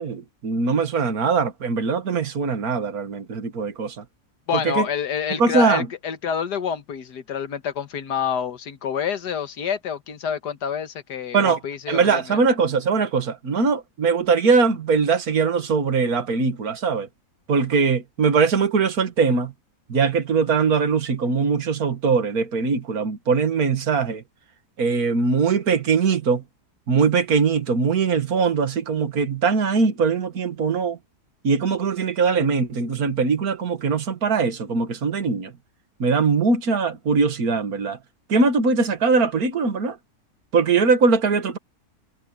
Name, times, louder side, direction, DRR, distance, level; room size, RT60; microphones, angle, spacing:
voice 1, 0.0-4.0 4.6-4.9 5.4-5.9 11.3-11.6 11.9-17.1 17.5-19.5 19.9-24.2 24.8-26.4 26.9-31.0 31.4-35.5 36.0-38.0 38.3-40.0 40.5-41.6, right 5 dB, 65° right, 2.2 m, -21 dB
voice 2, 4.5-12.4, left 7 dB, 90° left, 1.9 m, -28 dB
omnidirectional pair, 1.7 m